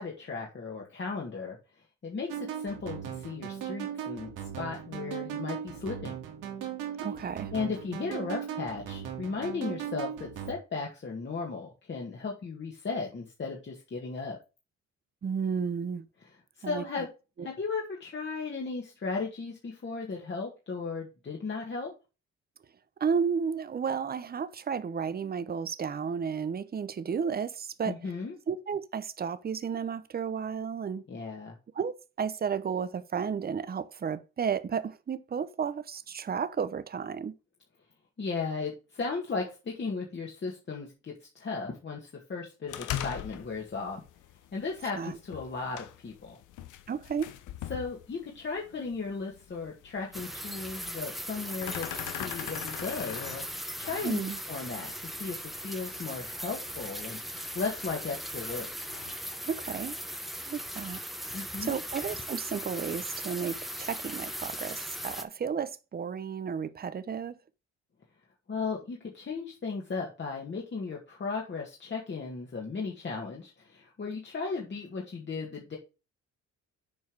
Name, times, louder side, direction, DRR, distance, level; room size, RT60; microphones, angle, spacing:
voice 1, 0.0-1.6 2.0-6.1 7.5-14.4 16.6-17.1 17.4-21.9 27.9-28.3 31.1-31.5 38.2-44.0 44.5-46.4 47.7-53.4 53.8-54.2 54.5-54.9 55.2-57.2 57.5-58.7 61.3-61.8 68.5-75.8, left 4 dB, 40° left, 1.9 m, -36 dB
sound 1, 2.3-10.5, right 9 dB, 90° right, 2.2 m, -38 dB
voice 2, 7.0-7.5 15.2-16.0 16.6-17.1 17.4-17.5 23.0-28.1 28.5-31.0 31.7-37.3 45.0-45.2 46.9-47.3 54.0-54.4 59.4-60.0 60.5-61.0 61.3-67.3, right 6 dB, 30° right, 0.7 m, -33 dB
sound 2, 42.7-59.1, left 11 dB, 85° left, 0.9 m, -43 dB
sound 3, 50.1-65.2, equal, ahead, 1.0 m, -39 dB
7.2 x 4.6 x 4.6 m
cardioid pair, 90°, 30 cm